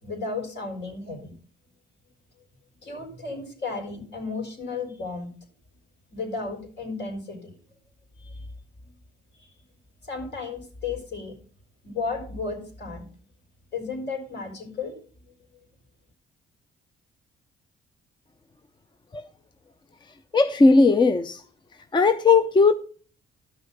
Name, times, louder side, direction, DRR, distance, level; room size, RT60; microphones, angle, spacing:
voice 1, 0.0-1.3 2.8-5.3 6.1-7.5 8.2-8.4 8.8-8.9 9.4-9.5 10.0-11.3 11.8-13.1 13.7-15.1, left 4 dB, 60° left, 4.6 m, -34 dB
voice 2, 20.3-21.4 21.9-22.7, left 3 dB, 25° left, 0.6 m, -17 dB
12.5 x 6.3 x 5.4 m
cardioid pair, 90°, 20 cm